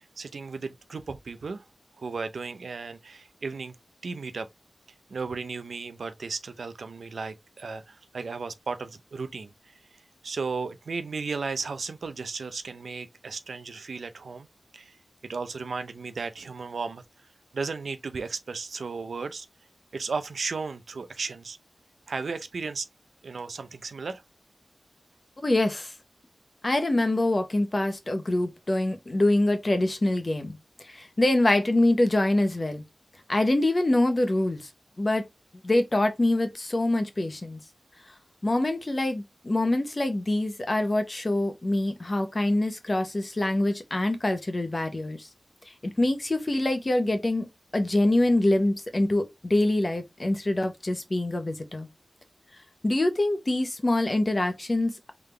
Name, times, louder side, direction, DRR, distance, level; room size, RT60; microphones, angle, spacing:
voice 1, 0.2-1.6 2.0-3.8 4.0-4.5 5.1-9.5 10.2-14.5 14.7-15.0 15.2-17.0 17.5-19.5 19.9-21.6 22.1-22.9 23.2-24.2, right 4 dB, 90° right, 0.6 m, -35 dB
voice 2, 25.4-25.9 26.6-30.6 30.8-32.8 33.3-34.7 35.0-35.3 35.6-37.6 38.4-45.3 45.7-47.5 47.7-51.9 52.8-55.1, left 1 dB, 35° left, 1.0 m, -25 dB
3.8 x 3.4 x 3.3 m
wide cardioid pair, 100°, 0 cm